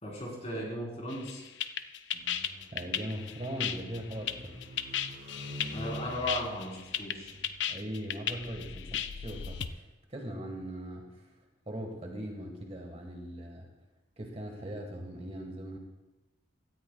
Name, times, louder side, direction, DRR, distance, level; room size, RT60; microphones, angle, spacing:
voice 1, 0.0-1.4 5.7-7.4, equal, 35° left, -3 dB, 3.6 m, -36 dB
sound 1, 1.1-9.7, left 9 dB, 70° left, 0.5 m, -35 dB
sound 2, 2.1-7.6, equal, 65° right, 3.7 m, -46 dB
voice 2, 2.7-4.5 7.7-9.8 10.1-11.3 11.7-13.7 14.2-15.8, right 1 dB, 30° right, 2 dB, 1.4 m, -40 dB
17.0 x 13.0 x 2.3 m, 1.1 s
head